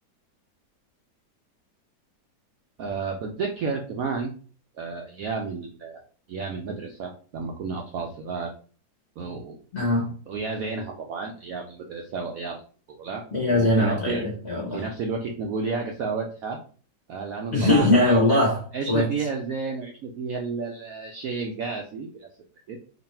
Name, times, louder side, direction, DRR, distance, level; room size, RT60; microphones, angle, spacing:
voice 1, 2.8-4.3 4.7-6.0 6.3-8.5 9.2-9.6 10.3-12.6 13.0-14.2 14.7-16.6 17.1-18.2 18.7-22.3 22.7-22.8, right 4 dB, 75° right, 1 dB, 0.7 m, -31 dB
voice 2, 9.7-10.1 13.3-14.8 17.5-19.1, left 1 dB, 45° left, -3 dB, 1.0 m, -21 dB
3.0 x 2.6 x 4.2 m, 0.42 s
omnidirectional pair, 2.0 m